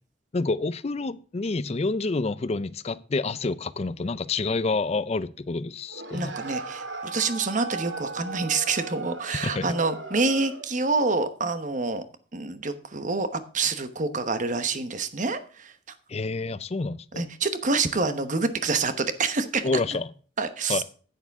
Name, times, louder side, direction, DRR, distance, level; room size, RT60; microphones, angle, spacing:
voice 1, 0.3-6.3 9.4-9.8 16.1-17.2 19.6-20.1 20.7-20.8, left 3 dB, 35° left, 0.5 m, -28 dB
sound 1, 5.9-10.8, right 3 dB, 75° right, 1.9 m, -37 dB
voice 2, 6.1-12.0 12.3-15.7 17.1-19.7 20.4-20.8, right 4 dB, 40° right, 1.0 m, -27 dB
10.5 x 9.5 x 3.5 m
head